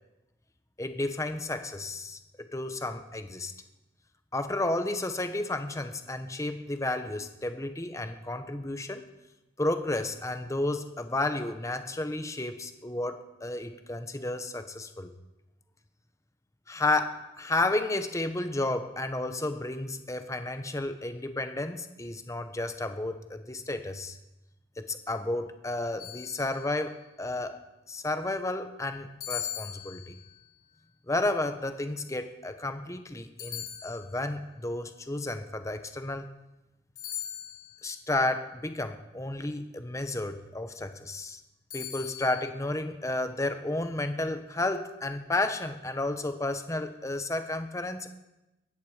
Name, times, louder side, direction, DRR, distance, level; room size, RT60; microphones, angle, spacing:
voice 1, 0.8-3.5 4.3-9.0 9.6-15.1 16.7-24.2 24.8-27.6 27.9-30.2 31.1-36.3 37.8-41.4 41.7-48.1, left 2 dB, 15° left, 8 dB, 1.0 m, -32 dB
sound 1, 26.0-26.9 29.2-30.5 33.4-34.4 37.0-37.9 41.7-42.5, left 11 dB, 60° left, 4.2 m, -40 dB
22.5 x 10.0 x 5.0 m, 0.97 s
head